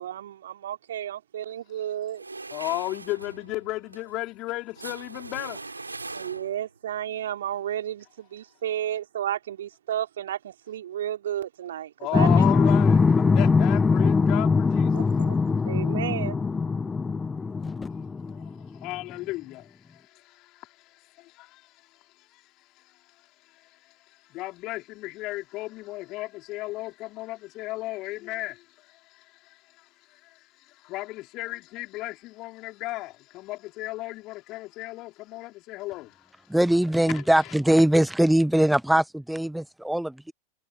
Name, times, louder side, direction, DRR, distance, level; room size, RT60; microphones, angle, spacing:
voice 1, 0.0-2.2 6.1-12.4 14.9-15.4 15.7-16.4, right 11 dB, 60° right, 4.2 m, -32 dB
sound 1, 2.1-6.8, right 3 dB, 80° right, 7.0 m, -40 dB
voice 2, 2.5-6.2 12.0-15.1 18.3-36.6 37.1-37.5, left 19 dB, 40° left, 3.7 m, -36 dB
sound 2, 12.1-18.7, left 4 dB, 15° left, 0.4 m, -22 dB
voice 3, 36.5-40.3, right 1 dB, ahead, 1.1 m, -21 dB
figure-of-eight pair, 90°, 0 cm